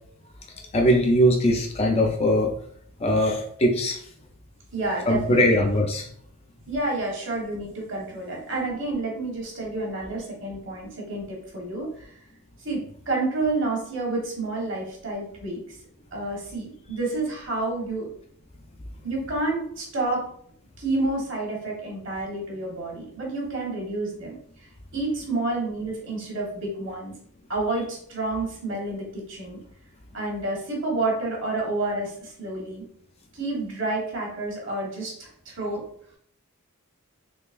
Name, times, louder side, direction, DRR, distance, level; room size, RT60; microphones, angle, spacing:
voice 1, 0.7-2.6 3.0-4.0 5.1-6.1, equal, 30° left, 2 dB, 0.4 m, -21 dB
voice 2, 4.7-5.6 6.7-12.2 12.6-15.6 16.1-18.1 19.0-20.3 20.8-24.3 24.9-27.1 27.5-29.6 30.1-32.8 33.3-35.8, right 2 dB, 55° right, -1 dB, 1.2 m, -29 dB
3.8 x 3.2 x 2.5 m, 0.63 s
head